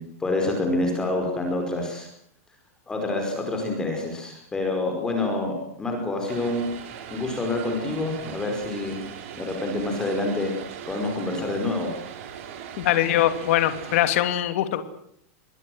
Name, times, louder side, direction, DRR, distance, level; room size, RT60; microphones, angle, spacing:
voice 1, 0.2-2.1 2.9-6.6 7.1-9.0 9.4-10.5 10.9-11.9, left 2 dB, 10° left, 3 dB, 5.0 m, -27 dB
Vehicle, 6.3-14.2, right 8 dB, 55° right, 5.0 m, -39 dB
voice 2, 12.8-14.8, left 13 dB, 55° left, 10 dB, 2.8 m, -22 dB
26.5 x 20.5 x 8.0 m, 0.67 s
supercardioid pair, 170°, 8 cm